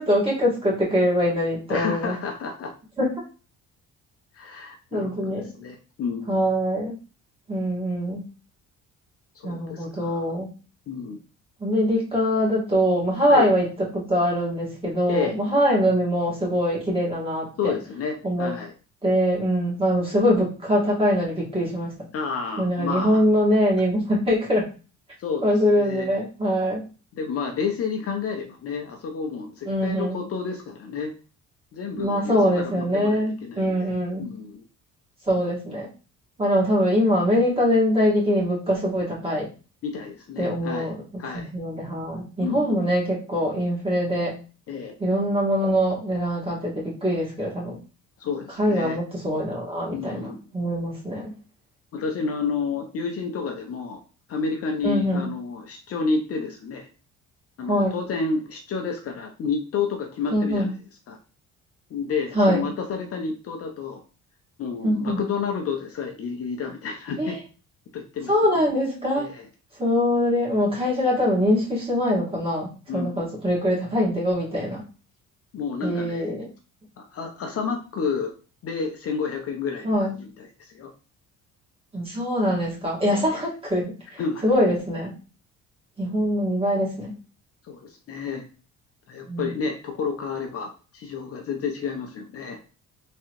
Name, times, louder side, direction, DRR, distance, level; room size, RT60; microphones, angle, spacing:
voice 1, 0.0-2.2 3.0-3.1 4.9-5.5 6.3-7.0 7.5-8.2 9.4-10.5 11.6-13.7 13.9-17.7 18.2-18.5 19.0-21.9 22.6-24.7 25.4-26.8 29.7-30.2 32.0-34.3 35.3-35.9 36.4-39.5 40.4-41.0 41.3-44.3 45.0-47.8 48.6-50.3 50.5-51.3 54.8-55.3 57.7-58.0 60.3-60.7 62.3-62.6 64.8-65.2 67.2-67.4 68.3-69.3 69.8-74.8 75.8-76.5 79.8-80.1 81.9-85.1 86.0-87.1 89.3-89.5, equal, 15° right, -5 dB, 1.8 m, -23 dB
voice 2, 1.7-2.7 4.3-6.4 9.3-10.2 10.9-11.2 13.3-13.5 15.1-15.3 17.6-18.7 22.1-23.2 25.2-25.4 25.8-26.1 27.1-31.1 31.7-33.9 34.2-34.6 39.8-40.9 41.2-41.5 42.4-42.7 44.7-45.0 48.2-49.0 49.9-50.4 51.9-54.0 54.3-56.9 57.6-60.7 61.1-61.2 61.9-64.0 64.6-67.4 67.9-68.3 69.2-69.4 72.9-73.3 75.5-76.3 77.0-78.3 78.6-80.9 83.1-83.4 84.2-84.4 87.6-88.4 89.1-92.6, left 5 dB, 45° left, 3 dB, 0.7 m, -30 dB
3.7 x 3.1 x 3.0 m, 0.34 s
cardioid pair, 140°, 32 cm